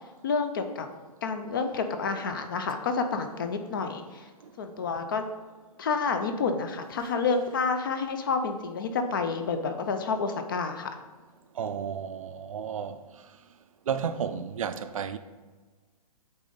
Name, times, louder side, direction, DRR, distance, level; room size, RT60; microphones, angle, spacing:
voice 1, 0.2-0.9 1.2-4.2 4.6-5.2 5.8-10.9, left 4 dB, 35° left, 0.5 m, -29 dB
voice 2, 11.6-13.0 13.9-15.2, right 7 dB, 60° right, 0.5 m, -32 dB
8.6 x 3.8 x 3.9 m
hypercardioid pair, 170°, 20 cm